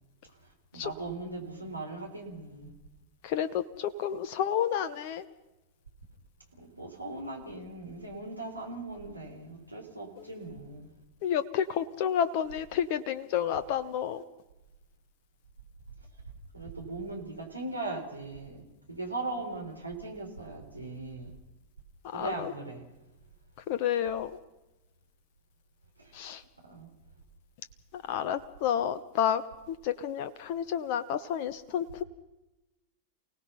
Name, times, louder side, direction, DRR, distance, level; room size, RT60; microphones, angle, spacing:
voice 1, 0.4-2.7 6.6-10.9 16.5-21.3 22.1-22.9 26.0-26.1 26.6-26.9, right 2 dB, 85° right, 2 dB, 4.2 m, -39 dB
voice 2, 3.2-5.2 10.2-10.3 11.2-14.2 22.0-22.5 23.7-24.3 26.1-26.4 27.9-32.0, left 9 dB, 45° left, 13 dB, 0.8 m, -30 dB
28.5 x 18.0 x 5.6 m, 0.99 s
figure-of-eight pair, 90°, 0 cm